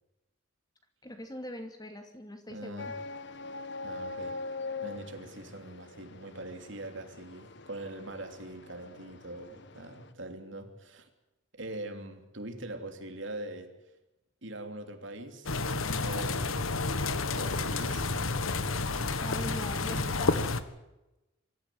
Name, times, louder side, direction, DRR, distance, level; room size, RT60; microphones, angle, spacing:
voice 1, 1.0-2.9 19.2-20.5, left 1 dB, 20° left, 6 dB, 2.6 m, -42 dB
voice 2, 2.5-2.9 3.8-4.4 4.8-11.1 11.5-13.7 14.4-16.7 17.0-18.1, right 1 dB, 60° right, 6 dB, 3.1 m, -42 dB
sound 1, 2.8-10.1, left 3 dB, 55° left, 1.3 m, -43 dB
sound 2, 15.5-20.6, left 3 dB, 80° left, 1.5 m, -30 dB
25.0 x 14.0 x 9.5 m, 0.97 s
head